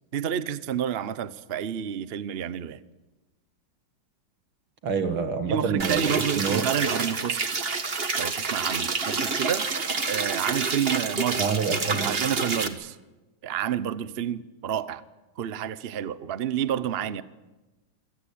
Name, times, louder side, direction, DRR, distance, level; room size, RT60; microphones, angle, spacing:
voice 1, 0.1-2.8 5.5-7.4 8.1-9.6 10.1-11.5 11.9-13.0 13.4-15.0 15.4-17.2, right 9 dB, 55° right, 15 dB, 0.6 m, -29 dB
voice 2, 4.8-6.1 6.4-6.6 11.4-12.1, right 5 dB, 85° right, 8 dB, 2.8 m, -27 dB
sound 1, 5.8-12.7, right 4 dB, 30° right, 1.5 m, -28 dB
26.5 x 17.5 x 8.7 m, 1.1 s
omnidirectional pair, 2.2 m